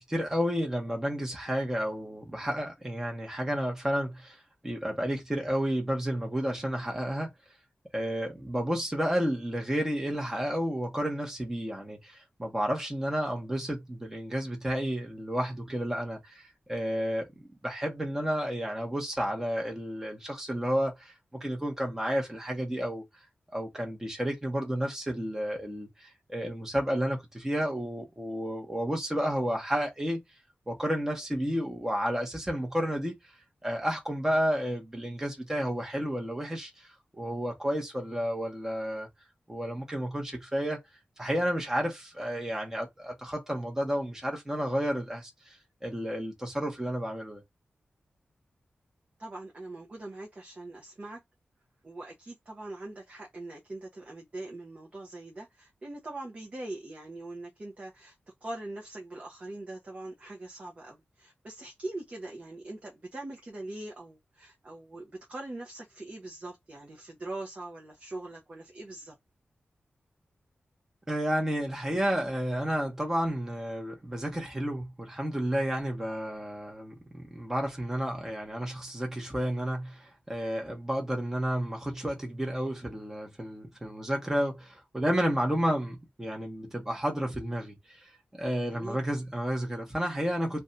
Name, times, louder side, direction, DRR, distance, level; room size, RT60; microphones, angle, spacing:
voice 1, 0.1-7.3 7.9-16.4 16.7-17.3 17.6-23.0 23.5-30.2 30.7-33.2 33.6-36.9 37.1-39.1 39.5-40.8 41.2-45.5 45.8-47.4 71.1-88.0 88.3-90.6, equal, 10° right, 0.9 m, -31 dB
voice 2, 49.2-51.2 51.8-58.2 58.4-69.1 88.7-89.0, right 2 dB, 35° right, 0.6 m, -42 dB
2.6 x 2.2 x 3.8 m
wide cardioid pair, 150°, 4 cm